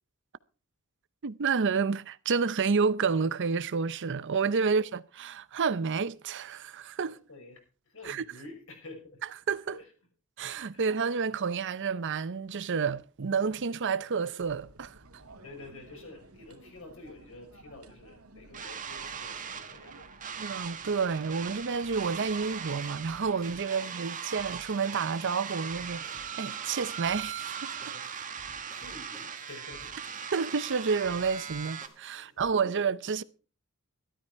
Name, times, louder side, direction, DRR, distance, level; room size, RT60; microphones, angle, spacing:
voice 1, 1.2-7.2 8.0-8.2 9.5-9.8 10.4-15.0 20.4-26.0 26.4-27.7 30.3-33.2, right 5 dB, 55° right, 0.6 m, -29 dB
voice 2, 7.0-7.6 7.8-9.2 9.7-9.9 10.7-10.8 15.4-20.3 23.7-23.9 27.8-28.1 28.7-30.3 32.1-32.8, left 2 dB, 65° left, 5.8 m, -49 dB
sound 1, 14.4-23.6, right 2 dB, 85° right, 2.0 m, -54 dB
sound 2, 18.5-31.9, right 7 dB, 35° right, 1.4 m, -39 dB
sound 3, 21.8-32.5, equal, ahead, 2.0 m, -58 dB
13.5 x 13.0 x 4.6 m
head